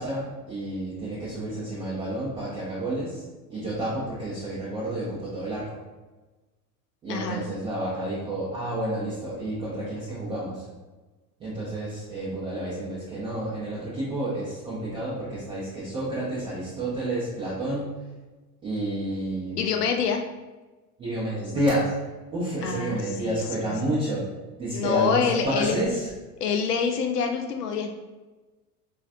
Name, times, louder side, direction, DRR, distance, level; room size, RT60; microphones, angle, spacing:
voice 1, 0.0-5.8 7.0-10.7 11.4-17.9 18.6-19.8 21.0-21.9 22.3-24.3 24.6-26.1, right 1 dB, 10° right, -8 dB, 0.4 m, -30 dB
voice 2, 7.1-7.4 19.6-20.2 22.6-23.7 24.7-25.8 26.4-27.9, left 6 dB, 75° left, 4 dB, 0.5 m, -26 dB
3.8 x 2.3 x 2.5 m, 1.2 s
figure-of-eight pair, 80°, 47 cm